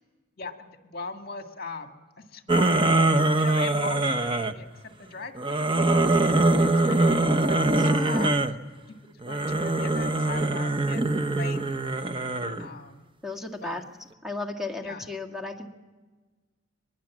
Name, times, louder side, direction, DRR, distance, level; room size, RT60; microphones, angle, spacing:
voice 1, 0.4-2.9 3.4-4.7 5.0-7.1 7.5-8.4 8.9-9.0 9.2-11.9 12.6-13.1 13.6-13.8 14.8-15.1, left 4 dB, 50° left, 5 dB, 2.1 m, -40 dB
sound 1, 2.5-4.5 5.4-8.5 9.2-12.7, right 2 dB, 25° right, 0.9 m, -23 dB
voice 2, 7.8-8.4 13.2-13.8 14.2-15.7, left 2 dB, ahead, 3 dB, 1.9 m, -34 dB
23.5 x 21.0 x 7.4 m, 1.3 s
head